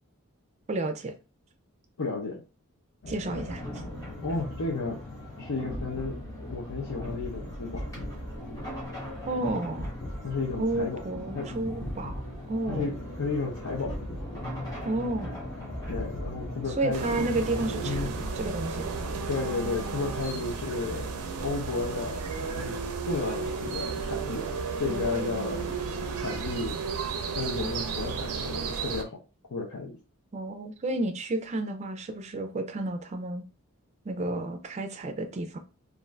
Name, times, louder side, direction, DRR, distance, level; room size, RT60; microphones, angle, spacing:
voice 1, 0.7-1.1 3.1-3.6 9.3-9.9 10.6-12.2 12.5-12.9 14.8-15.3 16.8-19.0 24.9-25.7 30.3-33.4 34.1-35.6, right 2 dB, 30° right, 0.3 m, -31 dB
voice 2, 2.0-2.4 4.2-5.0 5.4-7.8 10.2-11.0 11.3-11.5 12.7-14.0 15.9-17.1 17.8-18.1 19.3-22.2 22.6-22.8 23.1-24.5 24.8-25.7 26.1-26.8 27.3-29.2 29.5-30.0, left 3 dB, 85° left, 0.7 m, -33 dB
sound 1, 3.0-19.3, left 1 dB, 45° left, 0.6 m, -41 dB
sound 2, 3.3-18.1, equal, 15° left, 1.0 m, -40 dB
sound 3, 16.9-29.0, right 5 dB, 90° right, 0.5 m, -33 dB
2.5 x 2.4 x 3.1 m
head